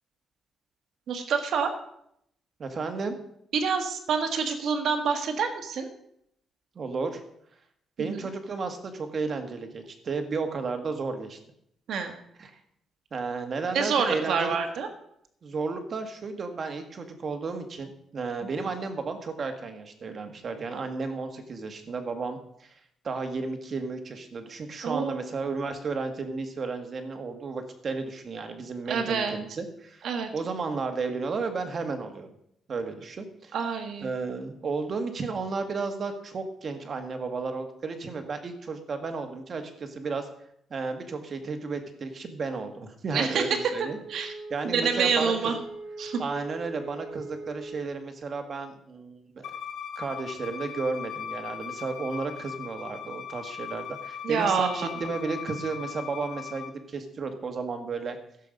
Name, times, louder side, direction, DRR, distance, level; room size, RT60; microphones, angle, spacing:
voice 1, 1.1-1.7 3.5-5.9 8.0-8.2 11.9-12.1 13.7-14.9 18.6-18.7 24.8-25.2 28.9-29.4 30.0-30.3 33.5-34.1 43.1-43.6 44.1-44.3 44.6-45.5 46.0-46.2 54.2-55.0, right 6 dB, 55° right, 6 dB, 1.6 m, -27 dB
voice 2, 2.6-3.1 6.7-7.2 8.0-11.4 12.0-12.1 12.4-12.5 13.1-14.6 15.4-22.7 23.0-30.0 30.3-32.3 32.7-33.6 34.0-40.3 40.7-45.5 46.2-49.5 49.9-58.2, right 4 dB, 35° right, 6 dB, 1.6 m, -33 dB
Wind instrument woodwind instrument, 43.8-48.0, right 2 dB, ahead, 2.6 m, -41 dB
Bowed string instrument, 49.4-56.7, left 8 dB, 80° left, 1.5 m, -39 dB
15.5 x 7.4 x 5.2 m, 0.73 s
cardioid pair, 170°, 0 cm